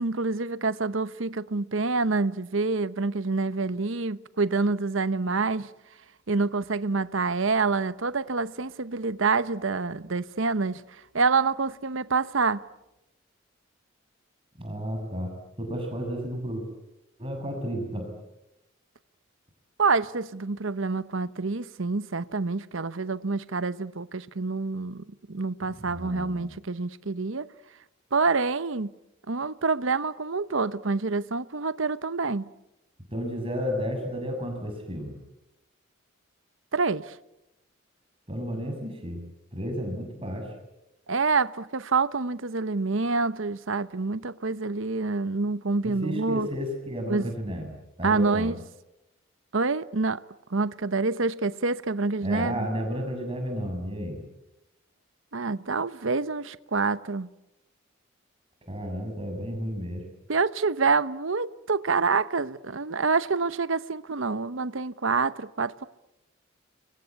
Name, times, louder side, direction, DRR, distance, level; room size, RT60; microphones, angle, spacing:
voice 1, 0.0-5.7 6.3-10.8 11.1-12.6 19.8-27.5 28.1-28.9 29.3-32.4 36.7-37.1 41.1-46.5 47.1-47.3 48.0-48.6 49.5-50.2 50.5-52.7 55.3-57.3 60.3-65.9, right 4 dB, 75° right, 0.9 m, -27 dB
voice 2, 14.6-15.3 15.6-16.6 17.2-18.1 25.7-26.5 33.1-35.2 38.3-39.2 39.5-40.5 45.8-47.7 48.0-48.5 52.2-54.2 58.7-60.0, equal, 25° right, 6.8 m, -32 dB
29.5 x 23.5 x 8.5 m
head